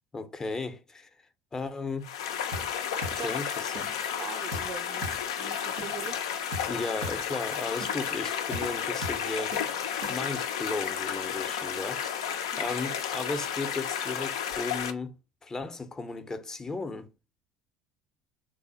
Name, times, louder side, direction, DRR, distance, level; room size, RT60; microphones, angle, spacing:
voice 1, 0.1-1.1 1.5-2.1 3.2-3.9 5.7-5.9 6.7-17.1, left 3 dB, 20° left, 0.5 m, -35 dB
sound 1, 2.0-14.9, left 8 dB, 90° left, 0.4 m, -32 dB
sound 2, 2.5-2.7 3.0-3.2 3.5-4.2 4.5-4.7 5.0-5.2 5.5-6.2 6.5-6.7 7.0-7.2 7.5-8.2 8.5-8.7 9.0-9.2 9.5-10.4, right 1 dB, 90° right, 1.1 m, -40 dB
voice 2, 2.9-3.4 4.2-6.4 12.5-12.8, right 7 dB, 45° right, 0.4 m, -43 dB
3.3 x 2.0 x 3.8 m
supercardioid pair, 85°, 3 cm